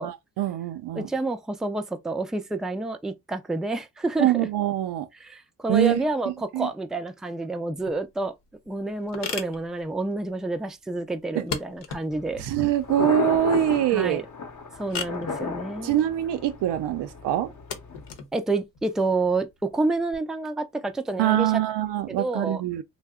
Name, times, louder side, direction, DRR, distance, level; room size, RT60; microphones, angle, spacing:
voice 1, 0.0-1.1 4.2-5.1 5.7-6.0 6.5-6.7 11.3-11.4 12.4-14.2 15.8-17.5 21.2-22.8, right 12 dB, 75° right, 0.6 m, -24 dB
voice 2, 0.9-4.5 5.2-8.3 8.7-12.4 13.9-14.2 14.8-16.0 18.3-21.6 22.1-22.6, right 2 dB, ahead, 0.4 m, -29 dB
sound 1, 7.7-20.2, left 6 dB, 75° left, 0.9 m, -40 dB
Thunder, 12.1-18.1, left 4 dB, 45° left, 0.9 m, -33 dB
2.6 x 2.1 x 3.5 m
supercardioid pair, 55°, 42 cm